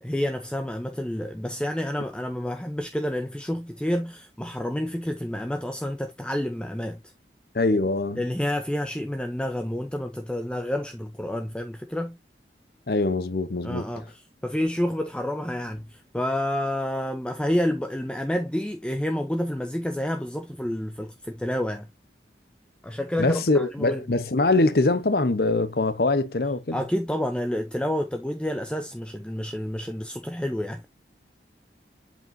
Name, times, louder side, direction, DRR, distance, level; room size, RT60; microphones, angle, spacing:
voice 1, 0.0-7.0 8.2-12.2 13.6-21.9 22.8-24.0 26.7-30.9, left 1 dB, 5° left, 0.5 m, -29 dB
voice 2, 7.5-8.2 12.9-13.8 23.2-26.8, left 2 dB, 55° left, 0.8 m, -23 dB
7.9 x 5.1 x 2.6 m
head